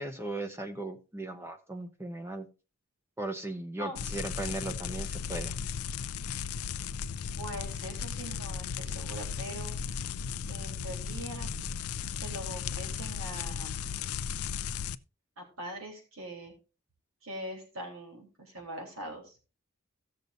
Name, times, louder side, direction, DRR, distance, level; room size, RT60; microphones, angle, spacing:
voice 1, 0.0-2.5 3.2-5.5, right 2 dB, 10° right, 6 dB, 0.7 m, -37 dB
sound 1, 4.0-15.0, left 7 dB, 85° left, 0.5 m, -36 dB
voice 2, 7.3-11.7 12.0-13.9 15.4-16.5 17.2-19.4, right 1 dB, 70° right, 1 dB, 3.5 m, -42 dB
17.0 x 6.7 x 2.6 m, 0.32 s
head